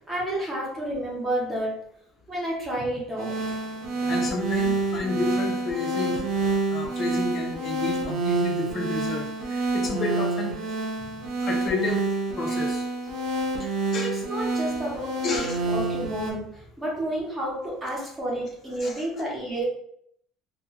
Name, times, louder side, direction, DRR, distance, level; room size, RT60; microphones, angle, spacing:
voice 1, 0.0-1.8 2.3-3.4 11.0-11.3 13.6-19.6, right 1 dB, 10° right, -5 dB, 0.8 m, -31 dB
sound 1, 3.2-16.3, right 3 dB, 50° right, 0.6 m, -28 dB
voice 2, 4.1-6.2 6.7-10.6 11.4-12.0 12.4-12.9 13.9-14.1 15.2-15.6 18.8-18.9, left 3 dB, 30° left, 1 dB, 0.5 m, -30 dB
2.2 x 2.2 x 3.0 m, 0.71 s
cardioid pair, 170°, 0 cm